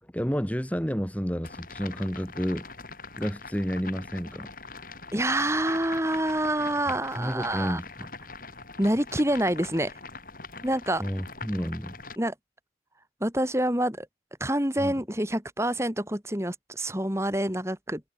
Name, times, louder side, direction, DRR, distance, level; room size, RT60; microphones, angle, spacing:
voice 1, 0.0-2.7 3.2-4.5 6.9-8.1 11.0-12.0 14.8-15.0, equal, 10° left, 5.7 m, -31 dB
sound 1, 1.4-12.2, left 4 dB, 50° left, 6.7 m, -43 dB
voice 2, 5.1-7.8 8.8-9.9 10.6-11.0 12.2-12.3 13.2-14.1 14.4-18.0, right 1 dB, 15° right, 4.8 m, -27 dB
head